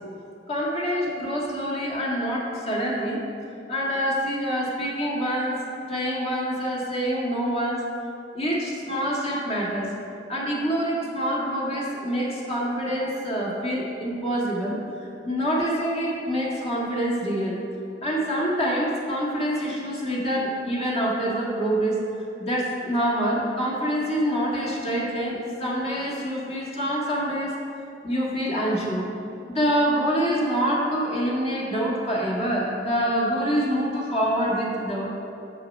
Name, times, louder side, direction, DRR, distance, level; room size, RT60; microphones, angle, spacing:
voice 1, 0.5-3.2 3.7-5.6 5.9-7.9 8.3-9.9 10.3-14.8 15.2-17.6 18.0-22.0 22.4-27.6 28.0-29.0 29.5-35.1, equal, 35° left, -4 dB, 1.7 m, -26 dB
7.5 x 6.8 x 5.3 m, 2.9 s
head